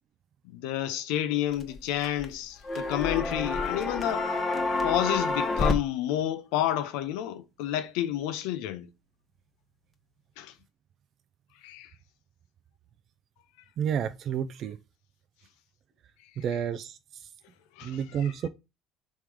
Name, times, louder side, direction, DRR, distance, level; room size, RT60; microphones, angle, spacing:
voice 1, 0.5-4.3 4.8-8.9 10.4-10.5 11.6-11.9 17.8-18.3, left 12 dB, 85° left, 0.5 m, -30 dB
sound 1, 1.5-2.3 2.6-5.8, left 3 dB, 30° left, 1.0 m, -28 dB
voice 2, 13.8-14.8 16.4-17.3 17.8-18.5, right 8 dB, 55° right, 0.3 m, -30 dB
3.6 x 3.1 x 4.7 m
supercardioid pair, 85°, 0 cm